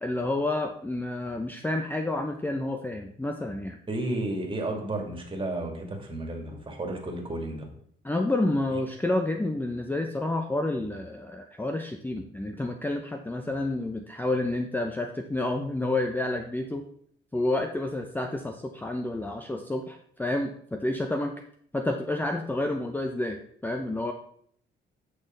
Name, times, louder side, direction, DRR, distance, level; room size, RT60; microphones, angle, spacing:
voice 1, 0.0-3.8 8.0-16.8 17.3-21.4 21.7-24.1, left 2 dB, 10° left, 5 dB, 0.7 m, -29 dB
voice 2, 3.9-7.7, right 2 dB, 25° right, 1 dB, 2.4 m, -32 dB
8.3 x 6.3 x 3.9 m, 0.63 s
cardioid pair, 90°, 20 cm